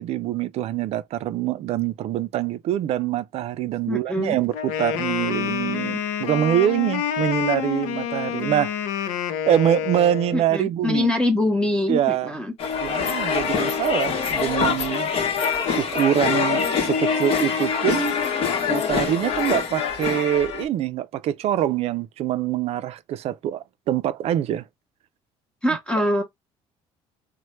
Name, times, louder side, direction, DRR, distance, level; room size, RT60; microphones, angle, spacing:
voice 1, 0.0-9.2 9.5-11.1 11.9-12.3 12.8-15.1 15.8-18.2 18.7-24.6, right 11 dB, 60° right, 0.4 m, -24 dB
voice 2, 3.9-4.4 10.3-12.5 12.9-13.0 25.6-26.2, left 1 dB, 10° left, 0.7 m, -24 dB
Wind instrument woodwind instrument, 4.5-10.4, left 9 dB, 80° left, 0.5 m, -28 dB
sound 1, 12.6-20.6, left 6 dB, 55° left, 0.9 m, -24 dB
3.1 x 2.1 x 2.9 m
supercardioid pair, 90°, 12 cm